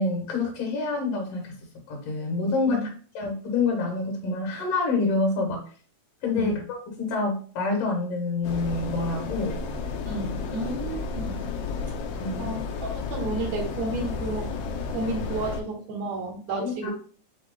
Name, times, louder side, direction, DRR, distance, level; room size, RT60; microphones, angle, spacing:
voice 1, 0.0-1.6 1.9-2.9 3.1-5.6 6.2-9.6 12.2-12.5 16.5-16.9, left 3 dB, 60° left, 0 dB, 2.3 m, -27 dB
sound 1, 8.4-15.6, left 5 dB, 90° left, 1.3 m, -32 dB
voice 2, 10.1-11.4 12.4-14.5 14.9-16.9, right 2 dB, 70° right, 2 dB, 2.1 m, -32 dB
6.3 x 2.2 x 3.6 m, 0.43 s
omnidirectional pair, 3.4 m